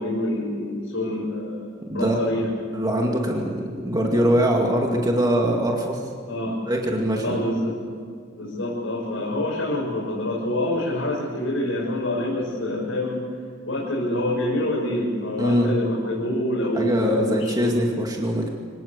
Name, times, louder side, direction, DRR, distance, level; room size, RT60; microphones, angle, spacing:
voice 1, 0.0-1.7 1.9-2.5 6.2-6.6 7.2-7.8 8.4-13.2 13.6-17.7, left 1 dB, 75° left, -5 dB, 6.2 m, -26 dB
voice 2, 1.9-6.1 6.7-7.4 15.4-15.7 16.7-18.5, equal, 20° right, 0 dB, 2.2 m, -23 dB
25.5 x 18.0 x 8.2 m, 2.2 s
head